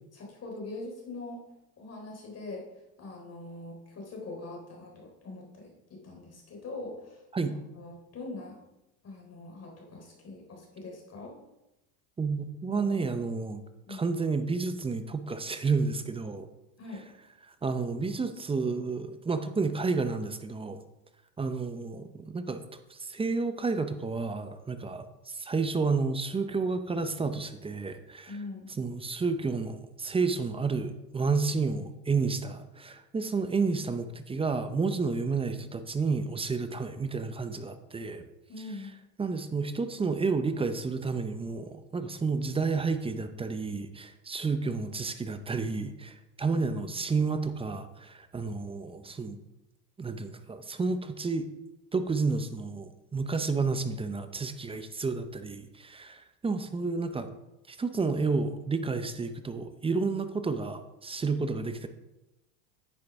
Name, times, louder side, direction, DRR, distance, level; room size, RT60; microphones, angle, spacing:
voice 1, 0.1-1.4 1.8-2.7 3.0-8.6 9.0-11.3 12.7-13.1 13.9-14.1 16.8-17.0 28.3-28.7 38.5-38.9, left 2 dB, 30° left, 0 dB, 3.6 m, -42 dB
voice 2, 12.2-13.6 13.9-16.5 17.6-20.8 21.4-22.6 22.9-28.4 28.8-38.2 39.2-49.4 50.0-51.5 51.9-57.3 57.7-61.9, right 4 dB, 10° right, 10 dB, 0.6 m, -31 dB
9.8 x 9.6 x 3.5 m, 0.94 s
supercardioid pair, 105°, 50 cm